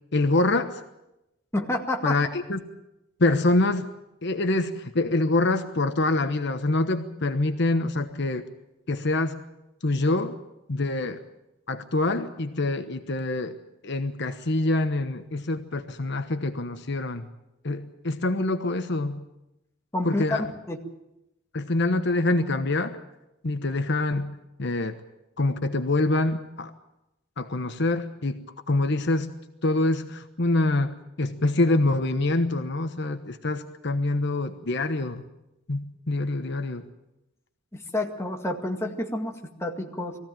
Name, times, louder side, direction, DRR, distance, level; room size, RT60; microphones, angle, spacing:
voice 1, 0.1-0.8 2.0-2.6 3.2-3.9 4.2-8.5 8.9-9.4 9.8-10.4 10.7-11.2 11.7-13.6 13.8-17.3 17.6-19.2 20.0-20.5 21.5-23.0 23.4-25.0 25.4-26.7 27.4-29.3 29.6-35.2 35.7-36.8, left 2 dB, 60° left, 8 dB, 1.1 m, -25 dB
voice 2, 1.5-2.2 19.9-20.4 20.7-20.8 37.7-40.2, left 1 dB, 15° left, 2 dB, 2.0 m, -29 dB
21.5 x 15.5 x 9.0 m, 0.91 s
head